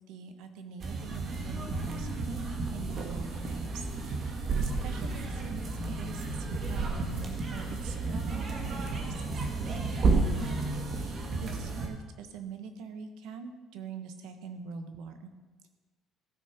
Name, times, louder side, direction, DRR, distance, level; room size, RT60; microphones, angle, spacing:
voice 1, 0.0-5.6 5.9-6.3 6.6-9.4 9.7-15.3, right 5 dB, 80° right, 8 dB, 1.3 m, -44 dB
sound 1, 0.8-11.9, right 3 dB, 35° right, 1.7 m, -32 dB
15.0 x 6.5 x 5.9 m, 1.2 s
cardioid pair, 160°, 0 cm